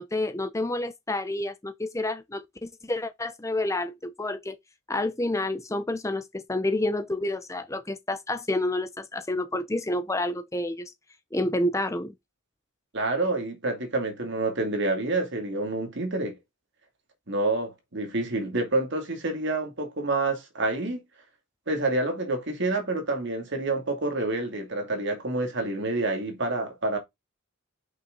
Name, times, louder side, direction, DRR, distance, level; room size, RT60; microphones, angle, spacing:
voice 1, 0.0-4.6 4.9-10.9 11.3-12.1, left 1 dB, 15° left, 0.7 m, -29 dB
voice 2, 12.9-16.4 17.3-21.0 21.7-27.0, right 2 dB, 60° right, 2.5 m, -28 dB
5.8 x 5.8 x 3.8 m
head